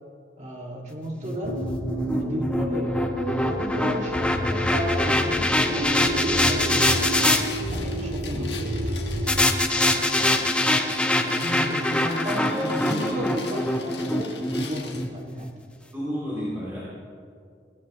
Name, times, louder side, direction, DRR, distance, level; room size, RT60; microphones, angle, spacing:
voice 1, 0.4-1.6 2.1-2.9 3.4-7.1 7.7-9.0 9.9-10.0 10.8-11.9 12.2-15.5, equal, 40° right, -1 dB, 2.4 m, -33 dB
sound 1, 1.2-7.4 9.3-15.5, left 1 dB, 5° left, 0.7 m, -24 dB
sound 2, 1.4-9.4, equal, 85° right, 2.2 m, -29 dB
sound 3, 6.8-15.1, left 6 dB, 75° left, 1.7 m, -40 dB
voice 2, 9.9-10.4 11.7-13.1 15.9-16.8, equal, 15° right, -8 dB, 3.1 m, -33 dB
21.5 x 16.0 x 3.2 m, 2.3 s
head